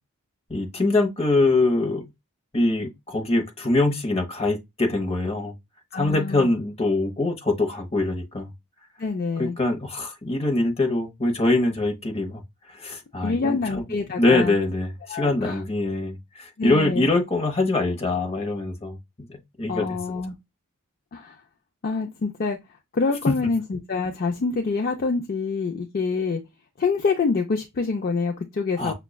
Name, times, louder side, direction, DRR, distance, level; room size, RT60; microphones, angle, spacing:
voice 1, 0.5-2.1 2.5-5.5 5.9-8.5 9.4-12.4 12.7-13.8 14.2-19.0 19.3-20.0 23.3-23.4 28.8-28.9, left 2 dB, 25° left, 0.8 m, -23 dB
voice 2, 5.9-6.5 9.0-9.6 13.2-14.6 15.1-15.6 16.6-17.1 19.7-20.3 21.1-21.4 21.8-22.6 22.9-26.4 26.8-28.9, left 4 dB, 45° left, 0.4 m, -26 dB
5.9 x 2.2 x 2.2 m
head